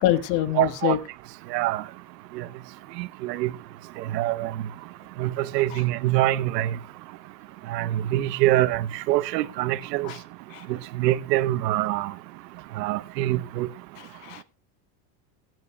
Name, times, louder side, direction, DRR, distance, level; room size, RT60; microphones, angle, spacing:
voice 1, 0.0-1.0 5.7-5.8 10.0-10.2 10.5-10.7 14.0-14.4, left 13 dB, 70° left, 1.4 m, -26 dB
voice 2, 0.6-1.0 1.5-1.8 2.4-2.5 3.0-3.5 4.1-4.5 5.2-6.7 7.7-10.1 11.0-12.1 12.8-13.7, right 15 dB, 85° right, 0.9 m, -24 dB
21.5 x 9.3 x 2.2 m
supercardioid pair, 115°, 48 cm